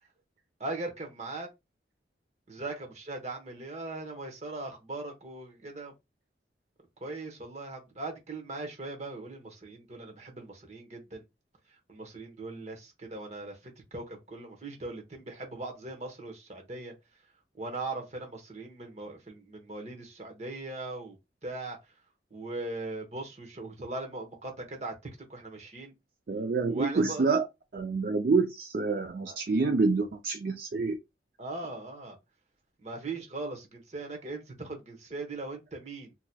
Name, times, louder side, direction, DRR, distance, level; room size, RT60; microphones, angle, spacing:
voice 1, 0.6-1.5 2.5-5.9 7.0-11.2 11.9-13.6 13.9-16.9 17.6-21.2 21.4-21.8 22.3-24.9 25.3-25.9 26.7-27.3 29.3-29.4 31.4-32.2 32.8-36.1, right 2 dB, 40° right, 1.0 m, -39 dB
voice 2, 26.3-27.5 27.7-31.0, right 4 dB, 55° right, 0.4 m, -27 dB
4.1 x 2.9 x 2.2 m
head